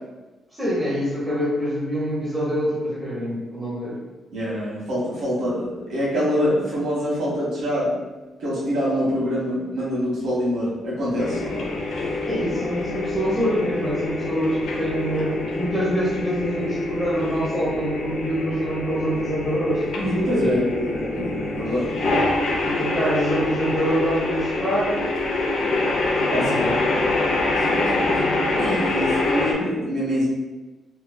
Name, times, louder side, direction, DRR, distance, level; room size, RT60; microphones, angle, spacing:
voice 1, 0.5-4.0 12.3-19.8 20.4-20.6 22.0-22.1 22.6-27.1, equal, 5° right, -9 dB, 1.0 m, -26 dB
voice 2, 4.3-7.9 8.4-11.6 19.9-21.9 26.3-26.7 27.6-30.2, equal, 75° right, -7 dB, 1.2 m, -25 dB
sound 1, 11.2-29.5, left 2 dB, 65° left, 0.4 m, -25 dB
3.0 x 2.5 x 2.2 m, 1.1 s
wide cardioid pair, 165°, 0 cm